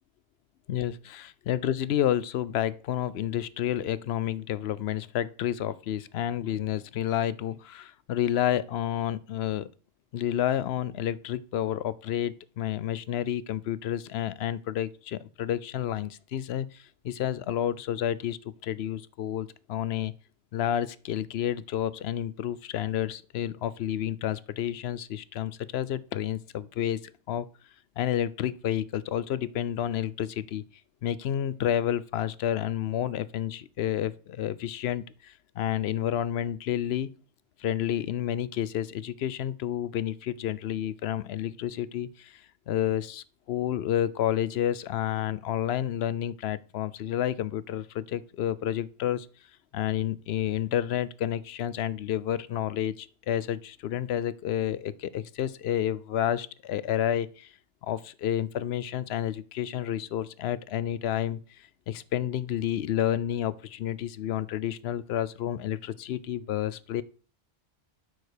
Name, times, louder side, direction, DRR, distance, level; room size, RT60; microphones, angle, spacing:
voice 1, 1.5-9.7 10.1-20.1 20.5-27.0 27.3-27.5 28.0-30.6 31.0-37.2 37.6-49.3 49.7-57.5 57.8-67.0, left 11 dB, 90° left, 0.8 m, -30 dB
8.6 x 4.9 x 6.5 m
omnidirectional pair, 1.0 m